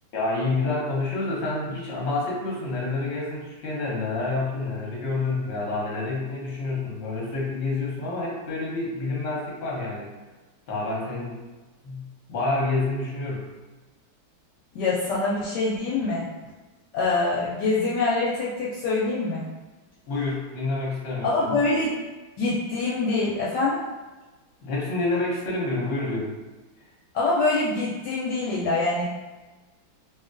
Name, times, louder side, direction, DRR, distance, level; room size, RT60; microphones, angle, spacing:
voice 1, 0.1-10.1 10.7-11.4 11.8-13.5 20.1-21.6 24.6-26.3, left 2 dB, 50° left, -5 dB, 0.9 m, -28 dB
voice 2, 14.7-16.3 16.9-19.5 21.2-21.9 22.4-23.8 27.1-29.0, left 3 dB, 75° left, -6 dB, 1.1 m, -24 dB
2.8 x 2.6 x 2.5 m, 1.2 s
omnidirectional pair, 2.1 m